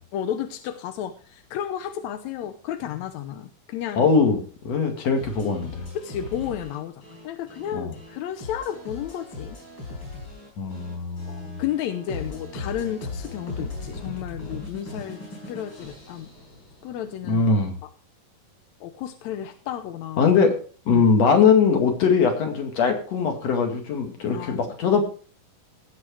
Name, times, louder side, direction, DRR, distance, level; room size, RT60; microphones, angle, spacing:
voice 1, 0.1-4.1 5.9-9.6 11.3-15.2 15.5-16.3 16.8-17.4 17.8-17.9 18.8-20.3 20.9-21.1 24.3-24.7, left 10 dB, 75° left, 9 dB, 1.8 m, -32 dB
voice 2, 4.0-5.9 7.7-7.9 10.6-11.6 17.3-17.8 20.2-20.5 20.9-25.0, left 5 dB, 50° left, 4 dB, 3.1 m, -21 dB
sound 1, 5.1-17.1, left 2 dB, 30° left, 7.6 m, -38 dB
18.0 x 6.7 x 4.8 m, 0.40 s
omnidirectional pair, 4.0 m